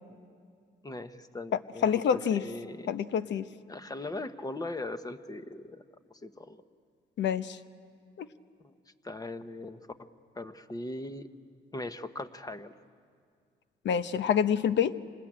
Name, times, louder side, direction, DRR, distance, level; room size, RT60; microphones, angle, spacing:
voice 1, 0.8-2.9 3.7-5.8 6.2-6.6 8.6-8.7 9.0-10.1 10.3-11.3 11.7-12.7, left 2 dB, 20° left, 9 dB, 1.1 m, -39 dB
voice 2, 1.8-2.4 2.9-3.5 7.2-7.6 8.2-8.3 13.8-14.9, left 8 dB, 65° left, 13 dB, 0.9 m, -27 dB
27.0 x 20.0 x 8.8 m, 2.2 s
cardioid pair, 90°, 20 cm